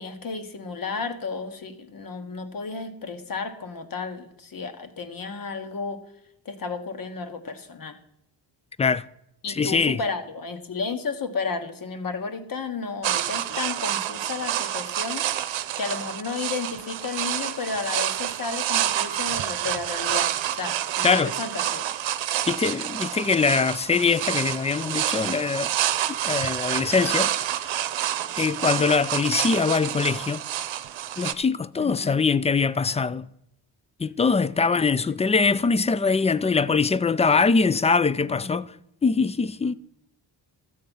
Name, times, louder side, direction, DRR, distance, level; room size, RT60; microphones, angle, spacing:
voice 1, 0.0-6.0 6.4-8.0 9.4-15.3 15.8-21.9 28.1-28.3 31.8-32.2 38.3-38.6, left 4 dB, 50° left, 1.5 m, -33 dB
voice 2, 9.5-10.0 21.0-21.3 22.5-25.7 26.2-27.6 28.4-30.4 31.2-33.3 34.0-38.8 39.0-39.7, left 4 dB, 15° left, 0.3 m, -22 dB
sound 1, 13.0-31.3, right 12 dB, 80° right, 0.8 m, -28 dB
13.0 x 7.9 x 5.4 m
cardioid pair, 95°, 44 cm